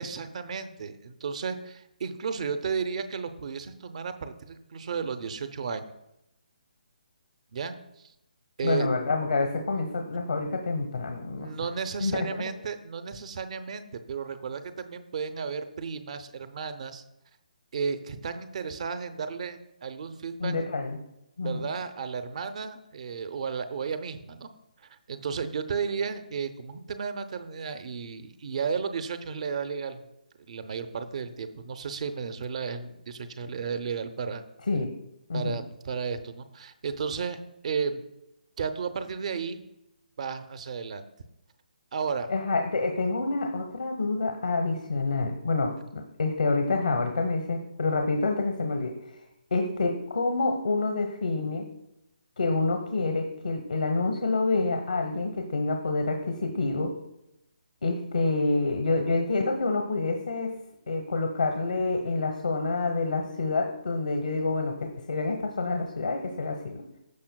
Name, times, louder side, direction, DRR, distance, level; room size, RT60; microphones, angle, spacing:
voice 1, 0.0-5.8 7.5-8.1 8.6-8.9 11.4-17.0 17.7-20.5 21.4-24.5 25.1-30.0 30.5-34.4 35.3-37.4 37.6-38.0 38.6-39.6 40.2-41.0 41.9-42.3, right 6 dB, 50° right, 9 dB, 0.7 m, -33 dB
voice 2, 8.6-11.5 12.0-12.5 20.4-21.0 21.4-21.7 34.7-34.9 35.3-35.6 42.3-49.0 49.5-51.7 52.4-56.9 57.8-60.5 60.9-66.8, left 3 dB, 70° left, 4 dB, 1.1 m, -27 dB
15.0 x 5.7 x 2.3 m, 0.85 s
figure-of-eight pair, 145°, 5 cm